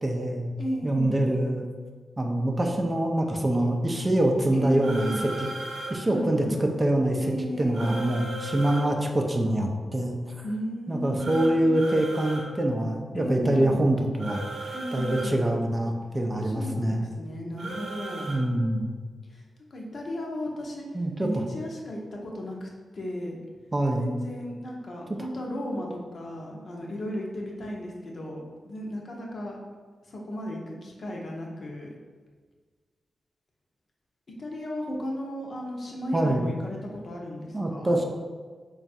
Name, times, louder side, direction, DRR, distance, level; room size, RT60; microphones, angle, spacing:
voice 1, 0.0-0.5 0.8-1.7 2.2-5.1 5.4-5.5 5.9-7.2 7.6-10.2 10.9-17.1 18.3-19.0 20.9-21.4 23.7-24.1 25.2-25.3 36.1-36.5 37.5-38.0, right 1 dB, 25° right, 2 dB, 0.4 m, -25 dB
voice 2, 0.6-1.2 4.5-5.2 6.0-6.6 7.2-8.0 10.4-11.8 13.1-13.9 14.7-15.4 16.4-18.3 19.3-19.4 19.7-20.9 21.2-23.4 24.0-29.6 30.1-32.0 34.4-38.0, equal, 55° left, -1 dB, 0.7 m, -34 dB
sound 1, 4.8-6.0 7.7-8.8 11.2-12.5 14.2-15.3 17.6-18.4, right 2 dB, 85° right, 0.8 m, -36 dB
3.4 x 2.4 x 4.1 m, 1.5 s
cardioid pair, 75°, 0 cm